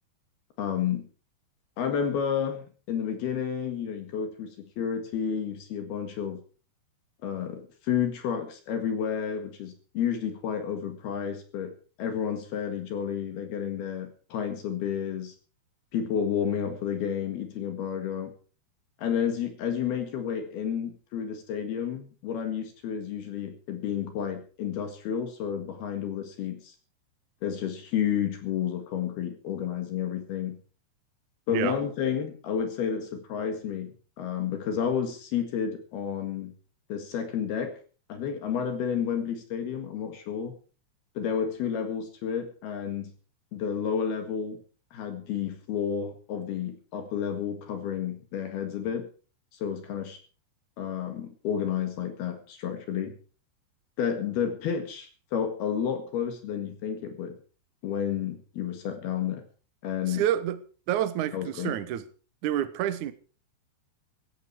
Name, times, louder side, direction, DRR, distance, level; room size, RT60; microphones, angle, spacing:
voice 1, 0.6-1.1 1.8-6.4 7.2-15.4 15.9-18.3 19.0-26.8 27.4-30.6 31.5-36.6 36.9-37.8 38.1-40.6 41.2-43.1 43.5-44.6 44.9-49.1 49.6-50.2 50.8-53.2 54.0-57.4 57.8-59.4 59.8-60.2 61.3-61.8, left 8 dB, 65° left, 3.5 m, -31 dB
voice 2, 60.1-60.6 60.9-62.0 62.4-63.1, right 11 dB, 80° right, 1.7 m, -28 dB
17.0 x 14.0 x 4.6 m
omnidirectional pair, 5.3 m